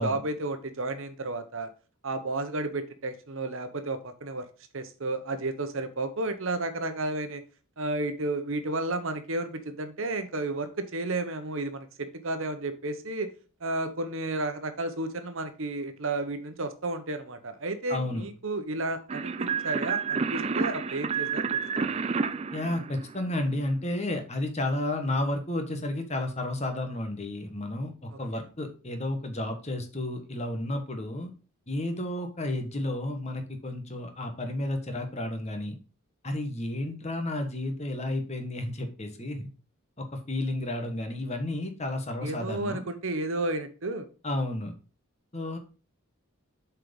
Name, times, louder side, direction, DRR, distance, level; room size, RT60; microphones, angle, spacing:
voice 1, 0.0-1.7 2.0-4.5 4.7-7.4 7.8-13.3 13.6-21.9 28.1-28.2 42.2-44.1, right 2 dB, 60° right, 9 dB, 1.0 m, -32 dB
voice 2, 17.9-18.2 22.5-31.3 31.7-35.7 36.2-39.5 40.0-42.8 44.2-44.7 45.3-45.6, left 1 dB, 30° left, 5 dB, 1.4 m, -32 dB
sound 1, 19.1-23.5, right 5 dB, 30° right, 0.4 m, -30 dB
7.6 x 4.7 x 5.3 m, 0.35 s
head